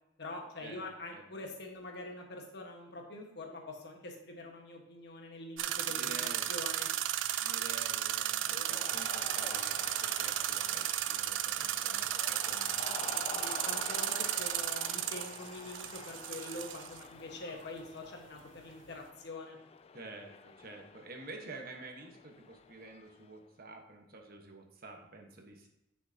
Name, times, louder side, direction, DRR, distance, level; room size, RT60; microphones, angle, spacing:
voice 1, 0.2-6.1 6.5-6.9 8.4-8.8 13.3-19.6, left 2 dB, 65° left, 2 dB, 1.4 m, -45 dB
sound 1, 5.6-17.0, right 12 dB, 85° right, 0.4 m, -34 dB
voice 2, 5.9-6.5 7.4-13.2 19.9-25.7, right 2 dB, 55° right, 3 dB, 1.2 m, -49 dB
Cheering, 8.4-23.3, left 5 dB, 35° left, 0.3 m, -48 dB
9.8 x 6.0 x 2.8 m, 0.88 s
head